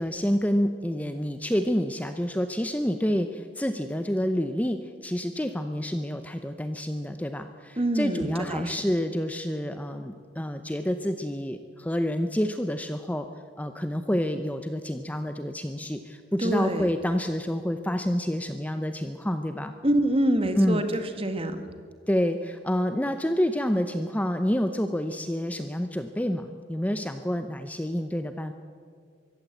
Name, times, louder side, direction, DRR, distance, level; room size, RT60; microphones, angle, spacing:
voice 1, 0.0-13.3 13.6-19.7 20.5-20.9 22.1-28.5, equal, 10° left, 8 dB, 0.7 m, -28 dB
voice 2, 7.8-8.7 16.4-16.9 19.8-21.6, right 1 dB, 30° right, 8 dB, 1.6 m, -26 dB
23.0 x 15.5 x 8.0 m, 2.1 s
head